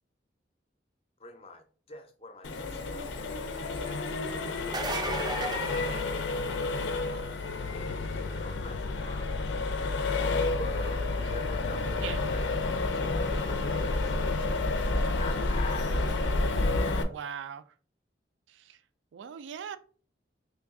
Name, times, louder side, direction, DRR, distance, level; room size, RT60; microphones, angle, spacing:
voice 1, 1.2-9.5 10.5-14.3 15.2-15.9 16.8-17.1, left 3 dB, 30° left, 0.5 m, -45 dB
Accelerating revving vroom, 2.4-17.0, left 3 dB, 90° left, 0.5 m, -30 dB
sound 1, 4.6-6.8 12.3-12.4 14.2-14.3, right 2 dB, 20° right, 0.4 m, -35 dB
voice 2, 17.0-17.6 18.5-18.8 19.1-19.8, right 8 dB, 90° right, 0.3 m, -40 dB
3.4 x 2.3 x 3.5 m
head